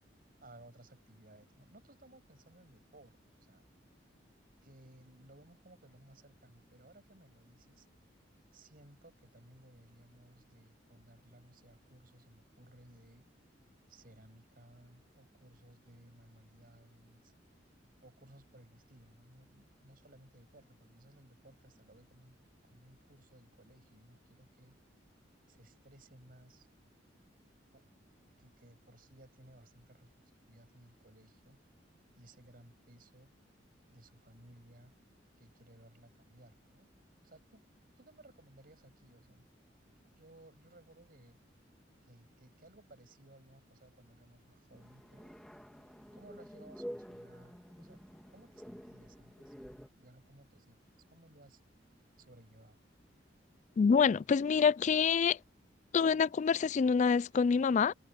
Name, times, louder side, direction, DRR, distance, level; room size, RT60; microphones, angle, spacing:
voice 1, 0.4-3.7 4.6-7.9 8.5-13.2 13.9-17.3 18.0-22.4 22.6-24.8 25.5-26.7 27.7-31.6 32.2-33.3 33.9-34.9 35.4-36.9 37.2-37.6 38.0-39.5 39.8-41.4 42.0-45.3 46.1-48.0 48.3-51.6 52.2-52.8, right 1 dB, 50° right, 7.0 m, -60 dB
sound 1, 44.7-49.9, equal, 5° left, 1.9 m, -49 dB
voice 2, 53.8-55.4 55.9-57.9, left 6 dB, 40° left, 0.3 m, -26 dB
head